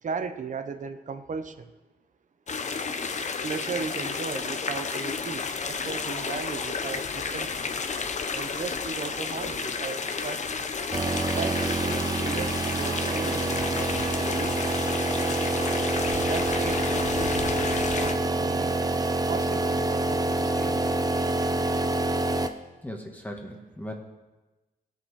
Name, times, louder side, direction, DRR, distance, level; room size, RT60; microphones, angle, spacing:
voice 1, 0.0-1.7 3.4-7.7 8.3-10.7 11.3-14.6 15.2-15.5 16.1-18.8 19.3-21.0, right 5 dB, 55° right, 10 dB, 0.8 m, -37 dB
sound 1, 2.5-18.1, left 5 dB, 50° left, 0.8 m, -32 dB
sound 2, 10.9-22.5, right 2 dB, 25° right, 0.8 m, -27 dB
voice 2, 22.8-23.9, equal, 10° left, 1 dB, 1.5 m, -38 dB
16.5 x 6.7 x 4.8 m, 1.1 s
cardioid pair, 70°, 16 cm